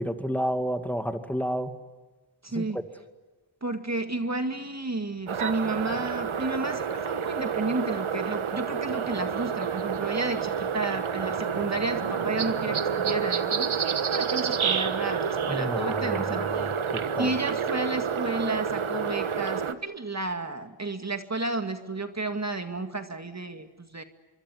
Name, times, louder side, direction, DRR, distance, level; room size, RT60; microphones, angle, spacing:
voice 1, 0.0-1.7 2.5-2.7 15.5-16.7 17.1-17.3, equal, 5° left, 7 dB, 2.3 m, -30 dB
voice 2, 2.4-2.8 3.6-16.7 17.2-24.0, right 2 dB, 35° right, 7 dB, 2.1 m, -32 dB
sound 1, 5.3-19.7, right 7 dB, 80° right, 1.4 m, -29 dB
25.5 x 23.0 x 9.7 m, 1.3 s
cardioid pair, 50°, 48 cm